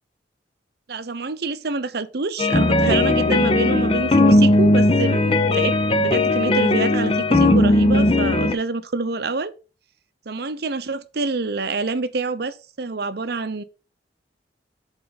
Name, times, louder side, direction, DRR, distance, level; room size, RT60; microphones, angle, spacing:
voice 1, 0.9-9.5 10.3-13.6, right 3 dB, 60° right, 0.7 m, -27 dB
sound 1, 2.4-8.5, left 2 dB, 30° left, 0.7 m, -17 dB
7.9 x 4.4 x 5.3 m
head